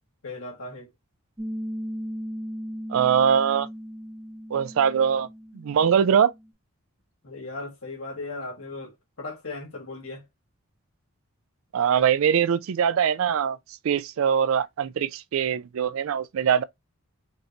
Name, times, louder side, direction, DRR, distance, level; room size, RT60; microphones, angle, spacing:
voice 1, 0.2-0.9 7.2-10.2, left 3 dB, 80° left, 1.8 m, -37 dB
Piano, 1.4-6.5, equal, 10° right, 0.7 m, -37 dB
voice 2, 2.9-3.7 4.5-5.3 5.5-6.3 11.7-13.6 13.8-16.6, right 8 dB, 75° right, 0.3 m, -22 dB
5.4 x 2.6 x 2.8 m
head